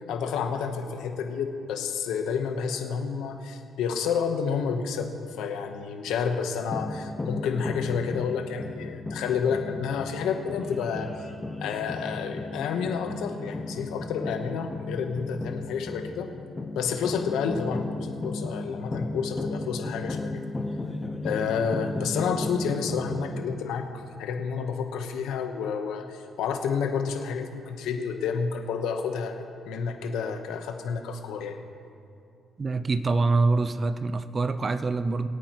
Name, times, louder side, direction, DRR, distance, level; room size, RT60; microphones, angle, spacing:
voice 1, 0.1-5.1 5.4-11.1 11.6-16.3 16.7-20.3 21.2-31.5, left 6 dB, 90° left, 5 dB, 1.0 m, -30 dB
sound 1, 6.7-23.4, left 2 dB, 20° left, 0.9 m, -35 dB
voice 2, 32.6-35.3, right 3 dB, 35° right, 12 dB, 0.6 m, -25 dB
22.5 x 8.9 x 3.1 m, 2.6 s
cardioid pair, 90°, 0 cm